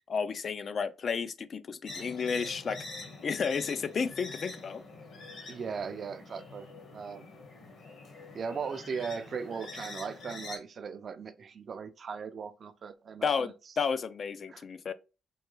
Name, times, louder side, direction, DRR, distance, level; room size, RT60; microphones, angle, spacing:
voice 1, 0.1-2.8 3.2-4.8 13.2-14.9, left 6 dB, 50° left, 0.4 m, -32 dB
sound 1, 1.9-10.6, left 3 dB, 65° left, 1.4 m, -45 dB
voice 2, 5.5-7.3 8.3-13.5 14.5-14.6, right 6 dB, 50° right, 0.4 m, -38 dB
4.4 x 2.2 x 3.1 m
cardioid pair, 90°, 0 cm